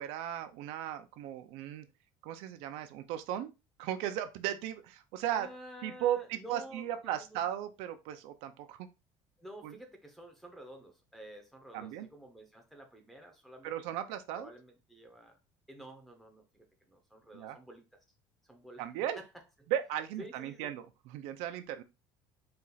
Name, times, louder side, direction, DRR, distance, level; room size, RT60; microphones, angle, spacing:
voice 1, 0.0-1.9 2.2-3.5 3.8-5.5 5.8-8.9 9.6-9.8 11.7-12.1 13.6-14.5 17.3-17.6 18.8-19.2 19.7-21.8, right 11 dB, 80° right, 8 dB, 0.6 m, -36 dB
voice 2, 5.3-7.4 9.4-13.7 14.3-15.4 15.7-17.8 18.4-18.9 19.2-19.3 19.6-19.7 20.2-20.7, right 1 dB, ahead, 2 dB, 0.8 m, -50 dB
4.3 x 2.5 x 3.9 m, 0.27 s
cardioid pair, 160°, 10 cm